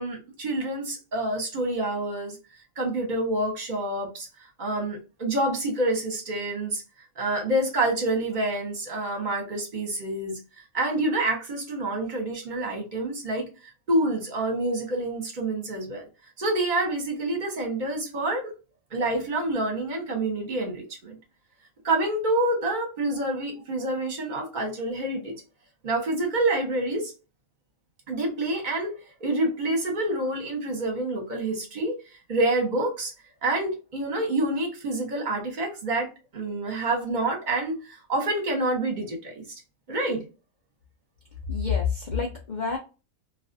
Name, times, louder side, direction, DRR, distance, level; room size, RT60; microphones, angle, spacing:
voice 1, 0.0-2.4 2.8-4.3 4.6-6.8 7.2-10.4 10.7-13.4 13.9-16.1 16.4-18.5 18.9-21.2 21.8-25.4 25.8-27.1 28.1-29.0 29.2-31.9 32.3-33.1 33.4-39.5 39.9-40.2, right 2 dB, 40° right, 1 dB, 0.8 m, -27 dB
voice 2, 41.5-42.8, left 6 dB, 80° left, 1 dB, 0.4 m, -27 dB
2.4 x 2.4 x 2.5 m, 0.31 s
omnidirectional pair, 1.5 m